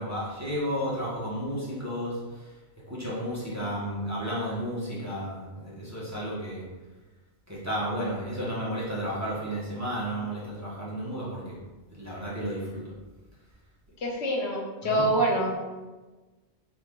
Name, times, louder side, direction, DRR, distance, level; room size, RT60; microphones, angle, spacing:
voice 1, 0.0-2.5 2.9-6.6 7.5-11.5 11.9-12.8 14.8-15.1, equal, 15° right, -8 dB, 1.0 m, -32 dB
voice 2, 14.0-15.6, right 1 dB, 70° left, -1 dB, 1.0 m, -26 dB
3.8 x 3.1 x 3.6 m, 1.2 s
omnidirectional pair, 1.2 m